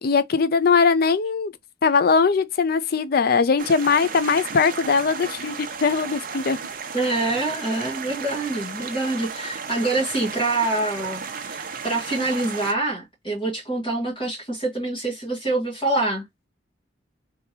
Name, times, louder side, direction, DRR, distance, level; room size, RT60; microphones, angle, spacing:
voice 1, 0.0-1.5 1.8-6.6, left 5 dB, 55° left, 0.5 m, -20 dB
sound 1, 3.6-12.7, right 6 dB, 45° right, 0.7 m, -34 dB
voice 2, 6.9-16.2, right 2 dB, 25° left, 1.7 m, -26 dB
3.4 x 3.3 x 2.8 m
head